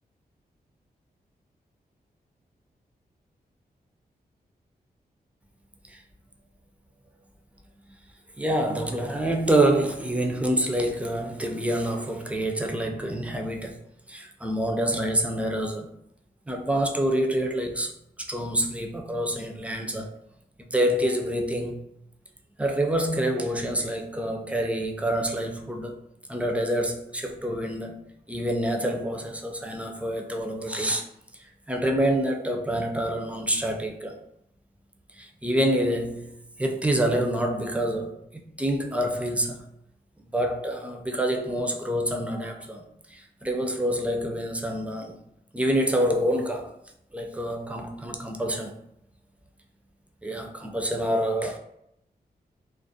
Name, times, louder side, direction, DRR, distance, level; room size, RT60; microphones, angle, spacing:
voice 1, 8.4-13.8 14.1-15.9 16.5-17.9 18.2-20.1 20.6-21.8 22.6-26.0 26.3-28.0 28.3-31.0 31.7-34.2 35.2-36.3 36.6-39.6 40.2-42.8 43.1-45.2 45.5-46.7 47.1-48.7 50.2-51.6, right 1 dB, 10° right, 0.4 m, -27 dB
2.4 x 2.0 x 2.6 m
cardioid pair, 75°, 17 cm